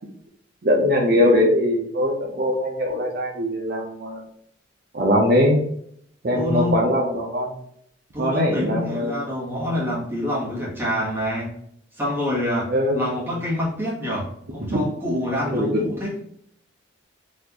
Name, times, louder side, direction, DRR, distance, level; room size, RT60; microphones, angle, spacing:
voice 1, 0.6-4.2 4.9-5.6 6.2-7.5 8.2-9.2 12.7-13.0 14.6-14.8 15.5-15.8, equal, 50° right, -1 dB, 0.6 m, -21 dB
voice 2, 6.3-6.9 8.1-11.5 11.9-16.2, left 1 dB, 10° right, -6 dB, 1.1 m, -26 dB
4.1 x 2.5 x 2.8 m, 0.69 s
head